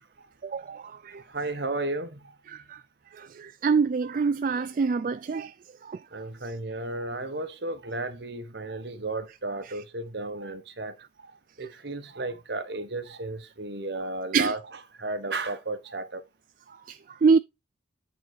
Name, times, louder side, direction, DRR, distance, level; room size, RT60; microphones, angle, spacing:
voice 1, 0.4-1.2 2.5-2.8 3.2-5.5 5.9-6.0 14.3-14.5 16.9-17.4, right 5 dB, 45° right, 0.3 m, -25 dB
voice 2, 1.3-2.2 6.1-10.9 11.6-14.6 15.0-16.2, right 2 dB, 60° right, 1.2 m, -33 dB
8.5 x 3.9 x 4.7 m
head